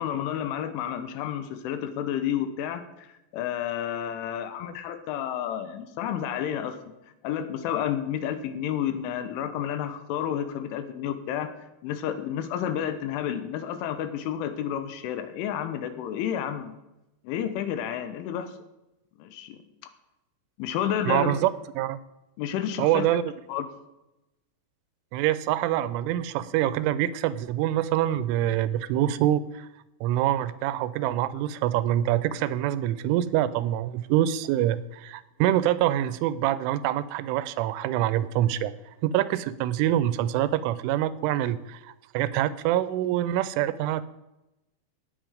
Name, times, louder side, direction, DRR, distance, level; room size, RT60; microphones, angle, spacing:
voice 1, 0.0-6.8 7.2-11.5 11.8-16.7 17.2-18.5 19.2-19.9 20.6-21.3 22.4-23.0 23.5-23.7, left 9 dB, 85° left, 10 dB, 3.3 m, -30 dB
voice 2, 21.1-21.5 21.8-22.0 22.8-23.2 25.1-29.7 30.0-38.7 39.0-44.1, right 12 dB, 85° right, 15 dB, 3.1 m, -25 dB
18.0 x 7.4 x 5.1 m, 0.96 s
omnidirectional pair, 5.7 m